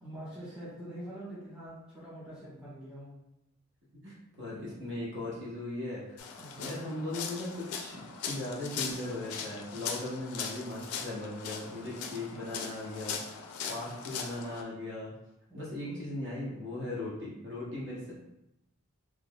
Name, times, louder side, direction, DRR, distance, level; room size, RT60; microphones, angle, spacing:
voice 1, 0.0-3.1 6.4-6.7 15.5-16.0, right 1 dB, 5° right, -10 dB, 1.4 m, -45 dB
voice 2, 4.0-6.2 6.6-13.2 13.7-15.1 15.5-18.1, left 1 dB, 55° right, -6 dB, 1.0 m, -38 dB
sound 1, 6.2-14.6, left 6 dB, 85° left, 0.5 m, -40 dB
3.9 x 3.1 x 2.3 m, 0.85 s
head